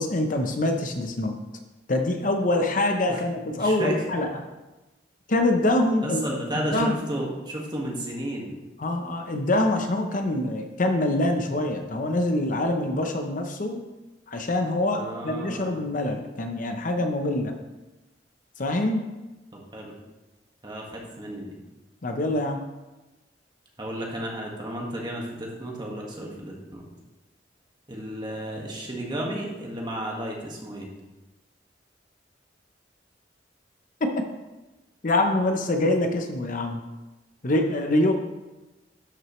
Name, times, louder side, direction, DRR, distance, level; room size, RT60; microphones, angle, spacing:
voice 1, 0.0-1.3 1.9-4.3 5.3-6.2 6.6-6.9 8.8-13.8 14.3-17.5 18.6-19.0 22.0-22.6 34.0-34.1 35.0-36.8 37.4-38.1, left 1 dB, 45° left, 4 dB, 0.7 m, -25 dB
voice 2, 3.5-4.0 6.0-8.5 14.9-15.8 19.5-19.9 20.6-21.5 23.8-26.8 27.9-30.9, right 1 dB, 25° right, -2 dB, 1.6 m, -33 dB
12.0 x 6.1 x 3.1 m, 1.1 s
head